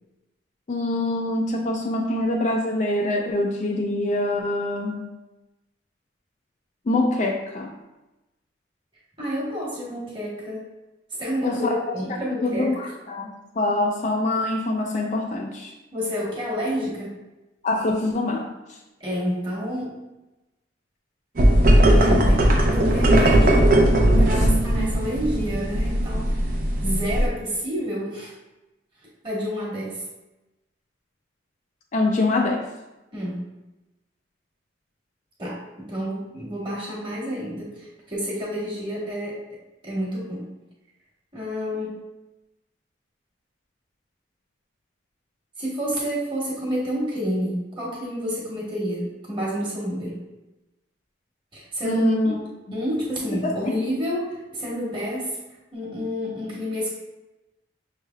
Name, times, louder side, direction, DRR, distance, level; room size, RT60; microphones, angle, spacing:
voice 1, 0.7-5.1 6.9-7.7 11.4-11.9 12.3-15.7 17.6-18.8 24.4-24.5 31.9-32.7 51.8-52.4 52.7-52.8 53.4-53.8, left 2 dB, 40° left, 1 dB, 0.4 m, -24 dB
voice 2, 9.2-10.7 11.2-12.7 15.9-17.2 19.0-19.9 21.9-23.7 24.2-26.5 26.8-28.3 29.2-30.0 33.1-33.4 35.4-39.4 39.8-40.5 41.3-42.0 45.6-50.2 51.5-52.0 52.4-55.4 55.7-56.9, equal, 25° right, -5 dB, 1.2 m, -29 dB
sound 1, 21.4-27.3, right 1 dB, 45° right, 0.6 m, -18 dB
6.3 x 3.3 x 2.3 m, 1.0 s
head